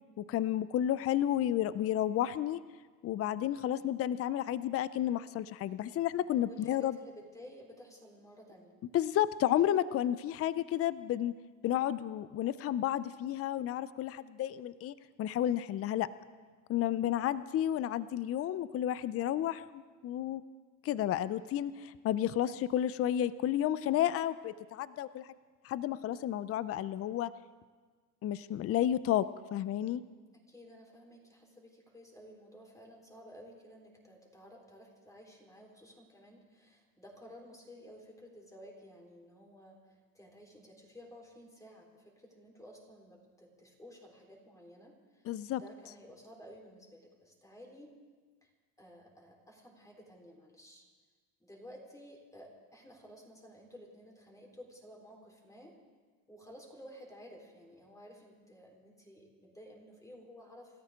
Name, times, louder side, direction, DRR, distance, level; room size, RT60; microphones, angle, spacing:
voice 1, 0.2-2.6 3.0-7.0 8.9-11.3 11.6-16.1 16.7-20.4 20.8-25.3 25.6-27.3 28.2-29.3 29.5-30.0 45.3-45.6, left 11 dB, 35° left, 16 dB, 0.5 m, -31 dB
voice 2, 6.4-8.8 21.3-21.5 30.3-47.9 48.4-48.5 48.8-50.9 51.4-55.8 56.3-60.8, equal, 5° left, 0 dB, 4.0 m, -54 dB
28.0 x 13.5 x 3.7 m, 1.5 s
supercardioid pair, 105°, 43 cm